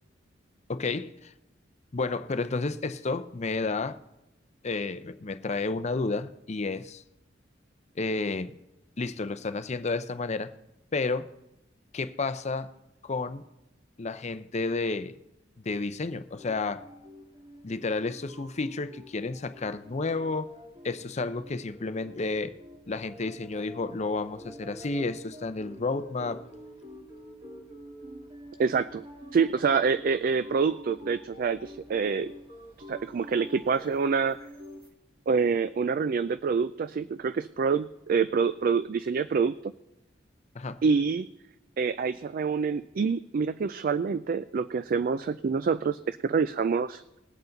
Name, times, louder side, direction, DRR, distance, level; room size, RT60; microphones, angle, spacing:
voice 1, 0.7-1.3 1.9-4.0 4.6-7.0 8.0-8.5 9.0-10.5 10.9-11.3 11.9-12.7 13.0-13.4 14.0-15.1 15.6-16.9 17.6-20.5 20.8-22.5 22.9-26.4 40.5-40.8, left 3 dB, 35° left, 0.6 m, -31 dB
sound 1, 16.4-34.9, equal, 30° right, 2.1 m, -47 dB
voice 2, 28.6-29.0 29.3-32.3 32.9-34.4 35.3-39.7 40.8-41.3 41.8-47.0, right 5 dB, 50° right, 0.3 m, -26 dB
20.5 x 8.1 x 3.9 m
head